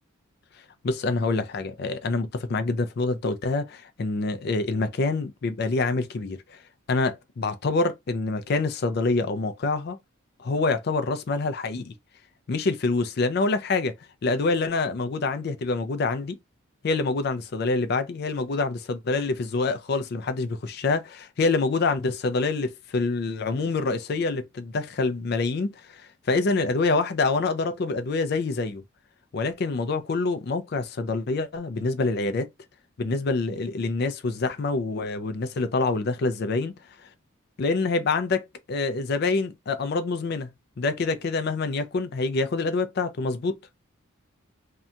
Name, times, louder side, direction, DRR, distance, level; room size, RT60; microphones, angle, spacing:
voice 1, 0.8-6.6 6.9-10.0 10.4-11.9 12.5-14.0 14.2-16.4 16.8-28.8 29.3-32.5 33.0-36.7 37.6-43.6, left 3 dB, 50° left, 0.4 m, -26 dB
2.7 x 2.2 x 2.4 m
head